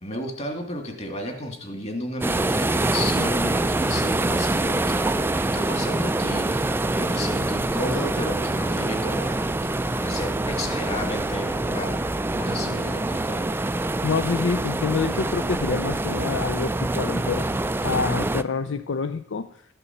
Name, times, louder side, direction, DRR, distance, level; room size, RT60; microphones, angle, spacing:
voice 1, 0.0-9.5 9.8-12.0 12.4-13.4, left 1 dB, 35° left, 5 dB, 2.2 m, -33 dB
sound 1, 2.2-18.4, right 2 dB, 10° right, 0.4 m, -25 dB
voice 2, 14.0-17.5 17.8-19.5, left 4 dB, 65° left, 10 dB, 0.5 m, -27 dB
12.5 x 6.9 x 7.1 m, 0.68 s
head